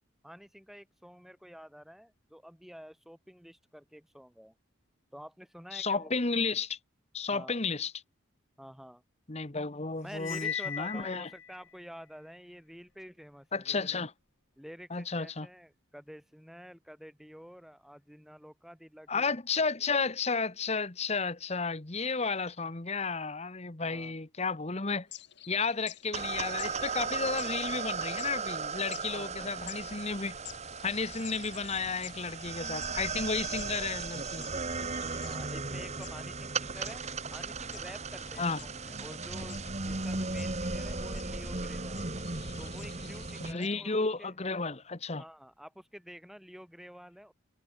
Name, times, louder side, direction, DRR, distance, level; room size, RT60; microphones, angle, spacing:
voice 1, 0.2-4.5 5.1-6.1 7.3-7.6 8.6-9.0 10.0-14.0 14.6-19.4 20.0-20.1 23.8-24.2 28.9-29.7 35.2-37.0 37.3-42.1 42.6-44.3 45.2-47.3, equal, ahead, 4.6 m, -49 dB
voice 2, 5.7-6.8 7.1-7.9 9.3-11.3 13.5-14.1 14.9-15.5 19.1-25.1 25.5-30.4 30.8-34.4 38.4-38.6 43.4-45.2, left 4 dB, 35° left, 1.2 m, -32 dB
Cymbal, 10.2-11.6, left 7 dB, 75° left, 3.7 m, -37 dB
sound 1, 25.1-43.8, left 12 dB, 60° left, 4.2 m, -52 dB
sound 2, 26.1-43.5, right 4 dB, 35° right, 2.2 m, -36 dB
head